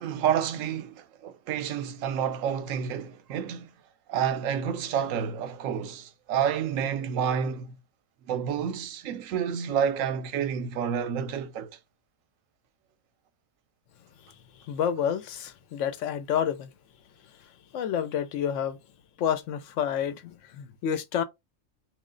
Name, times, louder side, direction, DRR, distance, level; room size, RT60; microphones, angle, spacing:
voice 1, 0.0-3.7 4.1-7.8 8.3-11.8, right 8 dB, 80° right, 1.0 m, -29 dB
voice 2, 14.7-16.7 17.7-18.8 19.2-21.2, left 9 dB, 70° left, 0.9 m, -29 dB
3.1 x 2.5 x 3.7 m
omnidirectional pair, 1.4 m